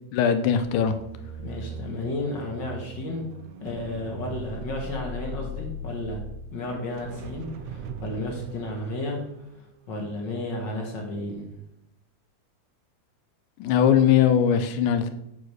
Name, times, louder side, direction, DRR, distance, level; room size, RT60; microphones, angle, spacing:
voice 1, 0.1-0.9 13.6-15.1, left 8 dB, 90° left, 9 dB, 2.2 m, -20 dB
sound 1, 0.7-10.8 11.2-11.5, right 2 dB, 75° right, 1.7 m, -39 dB
voice 2, 1.4-3.3 3.6-9.2 9.6-11.5, left 2 dB, 50° left, 0 dB, 1.5 m, -33 dB
7.0 x 4.9 x 6.1 m, 0.81 s
omnidirectional pair, 3.6 m